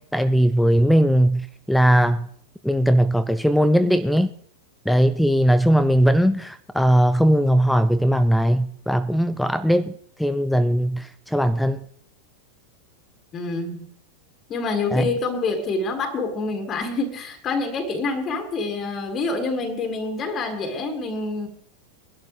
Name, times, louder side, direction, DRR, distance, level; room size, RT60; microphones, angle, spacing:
voice 1, 0.0-2.3 2.6-4.3 4.9-9.9 10.2-11.8 14.9-15.1, equal, ahead, 0.5 m, -19 dB
voice 2, 13.3-13.9 14.5-21.5, left 3 dB, 25° left, 2.1 m, -27 dB
22.5 x 12.0 x 3.3 m
figure-of-eight pair, 90°, 0 cm